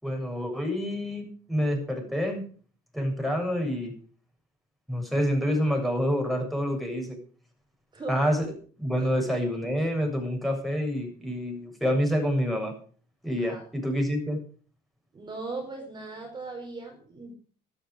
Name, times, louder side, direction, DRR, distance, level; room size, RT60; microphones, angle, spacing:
voice 1, 0.0-2.4 2.9-3.9 4.9-7.2 8.1-8.5 8.8-12.7 13.2-14.4, equal, ahead, 2 dB, 7.1 m, -27 dB
voice 2, 7.9-8.2 9.0-9.1 13.4-13.6 15.1-17.3, right 3 dB, 25° right, 2 dB, 4.8 m, -38 dB
13.0 x 13.0 x 5.1 m, 0.42 s
cardioid pair, 110°, 17 cm